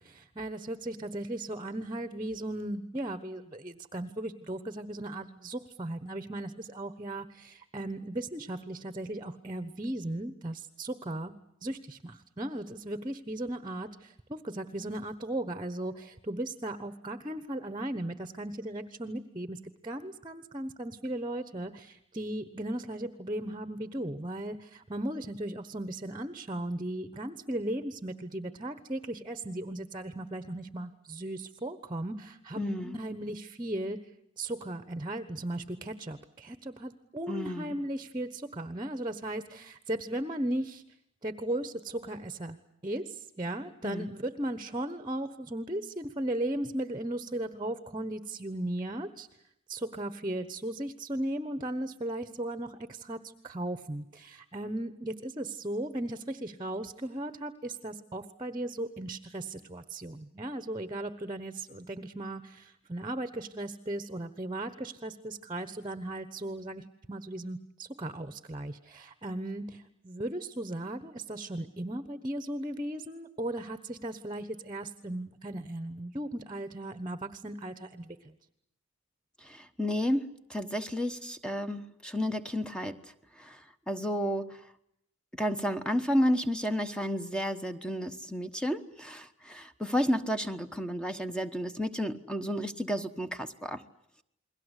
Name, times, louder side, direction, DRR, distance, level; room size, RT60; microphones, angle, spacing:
voice 1, 0.0-11.3 11.6-34.0 34.4-40.8 41.2-42.6 42.8-49.3 49.7-78.3, right 1 dB, 20° right, 11 dB, 1.1 m, -36 dB
voice 2, 32.6-33.0 37.3-37.8 43.8-44.1 79.4-83.0 83.4-84.6 85.3-93.8, equal, 5° left, 8 dB, 1.1 m, -32 dB
30.0 x 22.0 x 8.2 m, 0.77 s
head